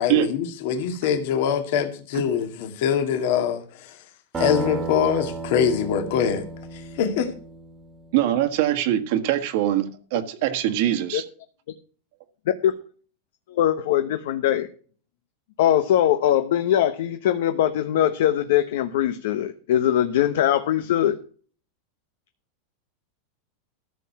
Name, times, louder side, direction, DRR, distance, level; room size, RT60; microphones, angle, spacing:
voice 1, 0.0-3.6 4.4-6.4 7.0-7.3, left 7 dB, 55° left, 2.1 m, -23 dB
sound 1, 4.3-8.1, right 3 dB, 15° right, 1.6 m, -33 dB
voice 2, 8.1-11.2, right 13 dB, 50° right, 1.4 m, -23 dB
voice 3, 13.5-14.7 15.6-21.2, left 11 dB, 70° left, 1.0 m, -21 dB
14.0 x 6.7 x 5.8 m
supercardioid pair, 170°, 0 cm